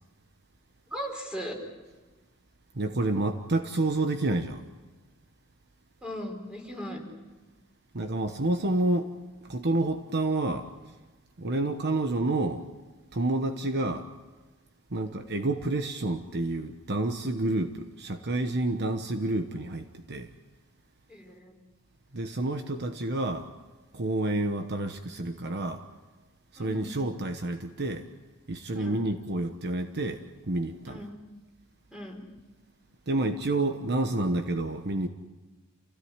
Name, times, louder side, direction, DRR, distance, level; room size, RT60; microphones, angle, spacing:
voice 1, 0.9-1.6 6.0-7.0 21.1-21.6 26.6-26.9 28.7-29.1 30.8-31.2 31.9-32.2, equal, 5° right, 2 dB, 4.7 m, -38 dB
voice 2, 2.7-4.6 7.9-9.1 9.4-10.7 11.4-12.7 13.1-14.1 14.9-20.3 22.1-23.5 23.9-25.8 26.5-28.1 28.5-31.1 33.1-35.1, right 2 dB, 50° right, 7 dB, 1.1 m, -29 dB
28.5 x 16.5 x 9.6 m, 1.2 s
head